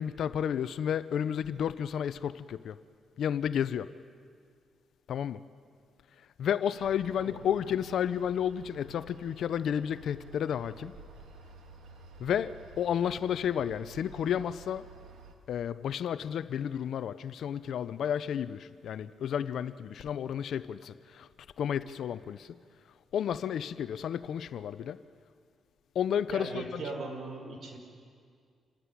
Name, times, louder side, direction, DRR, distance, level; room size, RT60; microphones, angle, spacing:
voice 1, 0.0-2.8 3.2-3.9 5.1-5.4 6.4-10.9 12.2-14.9 15.5-21.3 21.6-22.6 23.1-25.0 25.9-26.8, left 9 dB, 70° left, 0.7 m, -32 dB
sound 1, 6.8-15.3, right 3 dB, 80° right, 2.3 m, -51 dB
voice 2, 7.2-7.5 26.3-27.8, right 3 dB, 60° right, 5.5 m, -39 dB
27.5 x 16.5 x 9.8 m
cardioid pair, 105°, 0 cm